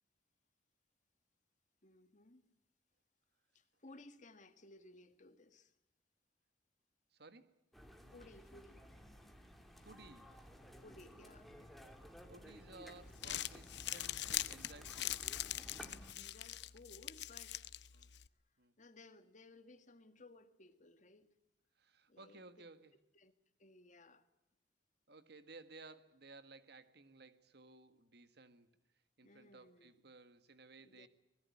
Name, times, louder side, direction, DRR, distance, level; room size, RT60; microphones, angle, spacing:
voice 1, 1.8-2.4 3.5-5.7 8.1-8.8 9.2-9.5 10.8-11.6 16.1-17.6 18.0-18.1 18.8-21.3 22.1-22.7 23.1-23.3 23.6-24.2 29.2-30.0 30.8-31.1, left 2 dB, 45° left, 1.9 m, -60 dB
voice 2, 7.1-7.6 9.8-10.4 12.2-15.3 17.9-18.1 18.6-18.7 21.8-23.0 25.1-28.7 29.2-31.1, right 3 dB, 65° right, 1.7 m, -58 dB
sound 1, 7.7-16.1, equal, ahead, 2.8 m, -56 dB
Crumpling crinkling, 13.0-18.3, left 13 dB, 70° left, 0.8 m, -43 dB
24.5 x 20.5 x 8.5 m
head